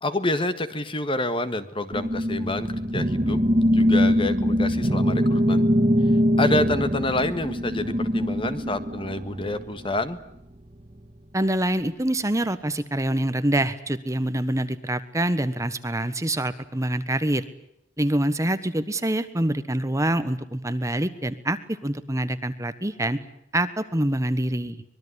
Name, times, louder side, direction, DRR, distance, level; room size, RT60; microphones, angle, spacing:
voice 1, 0.0-3.4 3.7-5.6 6.4-10.2, left 2 dB, 30° left, 11 dB, 1.7 m, -27 dB
sound 1, 1.9-9.7, equal, 30° right, 1.7 m, -22 dB
voice 2, 11.3-17.4 18.0-23.2 23.5-24.8, right 1 dB, 15° right, 11 dB, 1.3 m, -25 dB
25.0 x 21.5 x 9.8 m, 0.78 s
head